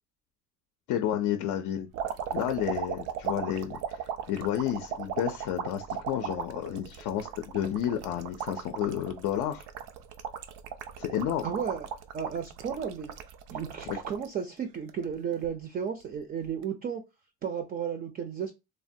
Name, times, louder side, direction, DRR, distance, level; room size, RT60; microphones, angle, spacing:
voice 1, 0.9-1.9 2.3-9.7 11.0-11.4 13.9-14.0, left 10 dB, 75° left, 0.4 m, -31 dB
sound 1, 1.9-14.3 14.7-15.5 16.5-16.6, right 8 dB, 85° right, 0.5 m, -37 dB
voice 2, 11.4-11.9 12.1-13.1 13.5-17.0 17.4-18.5, right 7 dB, 30° right, 0.4 m, -33 dB
3.2 x 2.1 x 2.6 m
cardioid pair, 140°, 31 cm